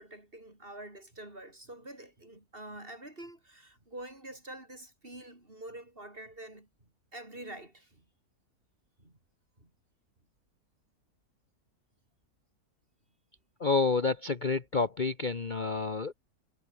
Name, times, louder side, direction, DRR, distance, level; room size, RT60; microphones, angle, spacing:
voice 1, 0.0-6.7 7.1-8.0 9.0-9.2 9.6-9.7, right 1 dB, 35° right, 5.9 m, -46 dB
voice 2, 13.6-16.1, left 4 dB, 35° left, 1.2 m, -29 dB
omnidirectional pair, 1.6 m